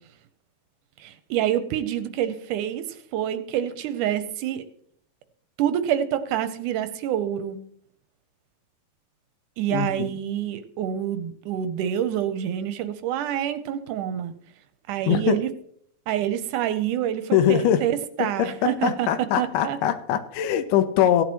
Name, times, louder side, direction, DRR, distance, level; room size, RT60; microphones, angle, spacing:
voice 1, 1.0-4.6 5.6-7.6 9.6-14.3 14.9-15.5 16.1-19.1 19.4-19.8, right 10 dB, 85° right, 11 dB, 2.2 m, -27 dB
voice 2, 9.7-10.1 15.1-15.4 17.3-17.9 18.2-21.2, left 10 dB, 90° left, 10 dB, 2.5 m, -22 dB
16.5 x 10.5 x 3.0 m, 0.62 s
omnidirectional pair, 3.7 m